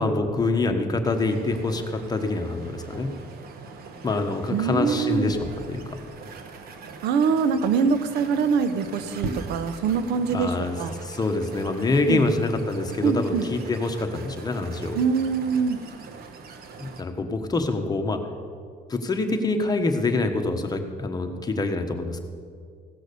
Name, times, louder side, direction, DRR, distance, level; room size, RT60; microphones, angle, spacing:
voice 1, 0.0-3.1 4.0-6.0 10.3-15.0 16.8-18.2 18.9-22.2, left 2 dB, 25° left, 5 dB, 1.2 m, -26 dB
sound 1, 1.0-17.0, right 4 dB, 65° right, 1.2 m, -41 dB
voice 2, 4.5-5.3 7.0-10.9 12.1-12.2 13.0-13.5 14.9-15.8, right 6 dB, 80° right, 12 dB, 0.8 m, -24 dB
16.0 x 6.3 x 6.9 m, 2.1 s
cardioid pair, 110°, 17 cm